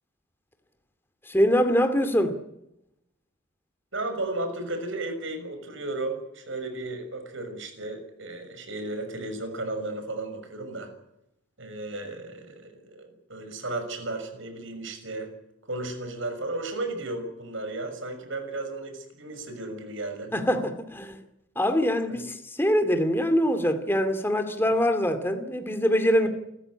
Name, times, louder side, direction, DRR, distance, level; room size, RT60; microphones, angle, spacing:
voice 1, 1.3-2.4 20.3-21.2 21.6-26.3, equal, 10° left, 2.4 m, -24 dB
voice 2, 3.9-10.9 11.6-15.3 15.7-20.3 22.1-22.2, right 2 dB, 65° right, 6.4 m, -34 dB
28.5 x 14.5 x 10.0 m
head